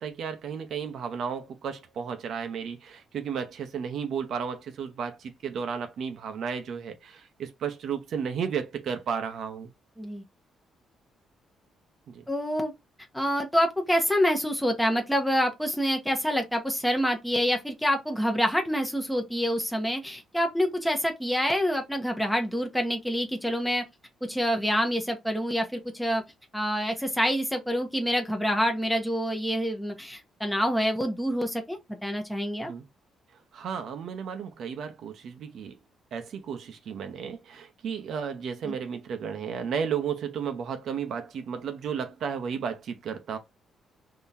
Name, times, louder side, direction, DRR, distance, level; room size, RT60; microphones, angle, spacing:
voice 1, 0.0-9.7 12.1-12.3 32.7-32.9 33.5-35.8 36.1-43.4, right 7 dB, 70° right, 0.7 m, -33 dB
voice 2, 12.3-12.7 13.1-23.8 24.2-26.2 26.5-32.7 38.7-38.8, equal, ahead, 0.9 m, -27 dB
3.8 x 2.9 x 2.7 m
cardioid pair, 90°, 0 cm